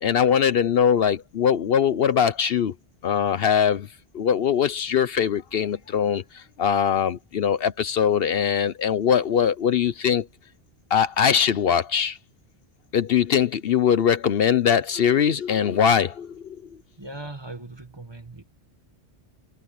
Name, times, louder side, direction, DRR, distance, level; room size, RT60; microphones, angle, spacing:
voice 1, 0.0-2.7 3.0-3.9 4.1-10.3 10.9-12.2 12.9-16.6, left 8 dB, 65° left, 0.9 m, -21 dB
voice 2, 17.0-18.4, right 2 dB, 25° right, 1.6 m, -39 dB
omnidirectional pair, 1.1 m